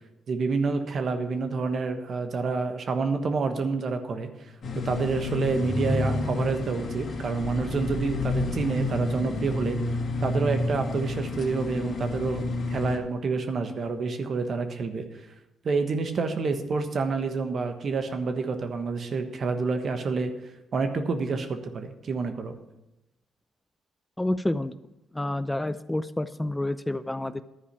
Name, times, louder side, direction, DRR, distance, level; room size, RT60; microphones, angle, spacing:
voice 1, 0.3-4.3 4.7-9.8 10.2-15.1 15.6-20.3 20.7-22.5, right 4 dB, 55° right, 7 dB, 1.3 m, -28 dB
sound 1, 4.6-13.0, left 2 dB, 55° left, 1.9 m, -30 dB
voice 2, 24.2-24.7 25.1-27.4, left 1 dB, 10° left, 13 dB, 0.5 m, -29 dB
11.5 x 4.9 x 8.4 m, 0.94 s
cardioid pair, 70°, 0 cm